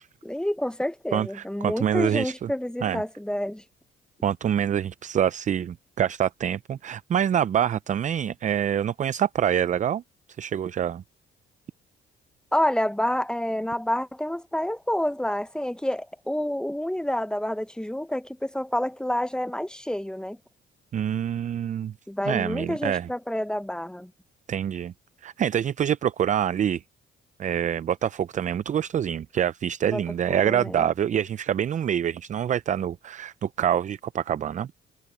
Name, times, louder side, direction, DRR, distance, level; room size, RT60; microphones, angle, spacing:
voice 1, 0.2-3.6 12.5-20.4 22.1-24.1 29.8-30.0 30.3-30.9, left 1 dB, 5° left, 0.9 m, -28 dB
voice 2, 1.1-2.5 2.8-3.0 4.2-10.0 10.4-11.0 20.9-21.9 22.3-23.1 24.5-24.9 25.2-26.8 27.4-34.7, right 9 dB, 40° right, 0.4 m, -26 dB
cardioid pair, 90°, 20 cm